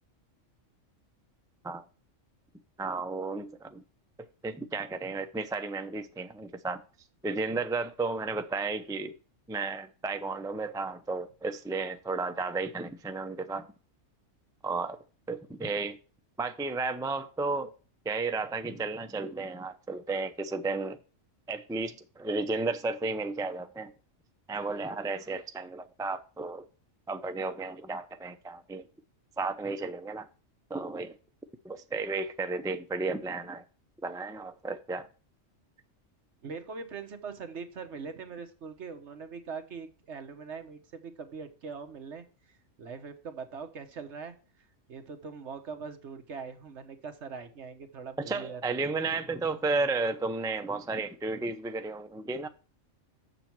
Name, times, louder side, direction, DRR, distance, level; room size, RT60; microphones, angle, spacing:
voice 1, 2.8-3.8 4.4-6.8 7.2-9.1 9.5-13.7 14.6-15.0 15.3-16.0 16.4-17.7 18.0-21.0 21.5-23.9 24.5-26.6 27.1-28.9 29.4-30.3 30.7-31.1 31.6-33.6 34.0-35.1 48.2-52.5, right 3 dB, 5° right, 0.3 m, -33 dB
voice 2, 36.4-44.3 44.9-48.6, right 5 dB, 65° right, 1.4 m, -42 dB
7.2 x 6.9 x 4.5 m
omnidirectional pair, 1.3 m